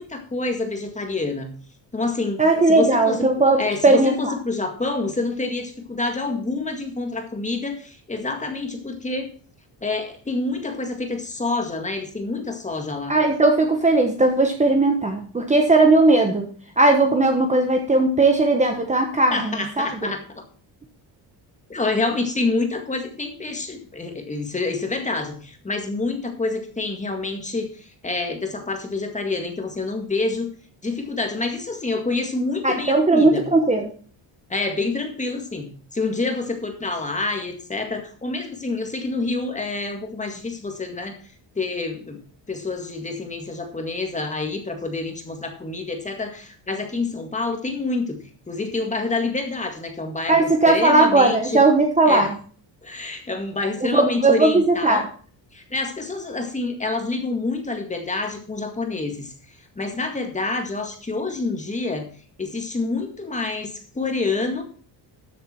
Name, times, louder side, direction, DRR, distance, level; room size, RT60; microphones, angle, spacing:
voice 1, 0.0-1.5 1.9-3.3 3.6-9.3 9.8-13.2 19.3-20.2 21.7-30.5 30.8-33.5 34.5-41.2 41.6-42.2 42.5-51.6 52.1-52.3 52.8-55.1 55.5-59.3 59.8-62.1 62.4-64.6, left 3 dB, 15° left, 4 dB, 1.9 m, -27 dB
voice 2, 2.4-4.3 13.1-16.5 16.8-20.1 32.6-33.9 50.3-52.3 53.8-55.0, right 2 dB, 15° right, 3 dB, 1.2 m, -18 dB
13.5 x 7.3 x 4.4 m, 0.42 s
cardioid pair, 165°, 44 cm